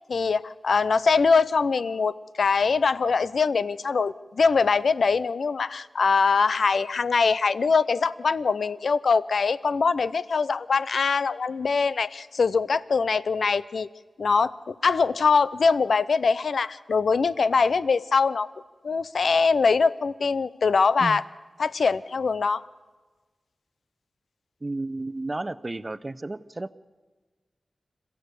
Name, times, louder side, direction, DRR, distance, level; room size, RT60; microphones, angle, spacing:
voice 1, 0.1-13.9 14.2-18.5 18.8-21.2 21.6-22.6, left 4 dB, 80° left, 17 dB, 0.6 m, -23 dB
voice 2, 24.6-26.7, right 2 dB, 30° right, 15 dB, 0.7 m, -32 dB
26.5 x 15.0 x 8.3 m, 1.3 s
wide cardioid pair, 85°, 0 cm